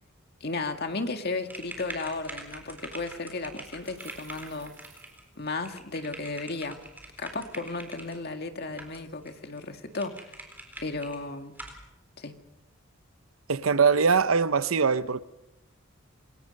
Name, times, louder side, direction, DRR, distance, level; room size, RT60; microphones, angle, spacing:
voice 1, 0.4-4.7 5.4-6.8 7.2-10.3 10.8-11.5 12.2-12.4, left 3 dB, 50° left, 1.9 m, -34 dB
sound 1, 1.4-8.2 8.7-9.3 9.6-9.7 9.9-11.2 11.5-11.8, right 1 dB, 10° right, 4.0 m, -44 dB
sound 2, 3.4-6.0, right 6 dB, 65° right, 6.0 m, -55 dB
voice 2, 13.5-15.2, right 5 dB, 90° right, 0.7 m, -22 dB
27.0 x 22.5 x 5.3 m
head